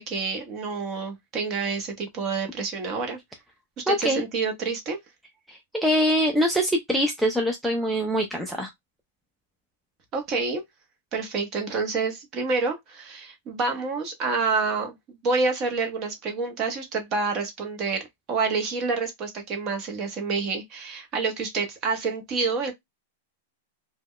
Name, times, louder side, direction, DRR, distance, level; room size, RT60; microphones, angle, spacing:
voice 1, 0.0-3.2 3.9-5.0 10.1-10.6 11.1-22.7, right 4 dB, 30° right, 0.8 m, -28 dB
voice 2, 3.9-4.2 5.5-8.7, equal, ahead, 0.3 m, -24 dB
2.2 x 2.1 x 3.6 m
supercardioid pair, 155°, 0 cm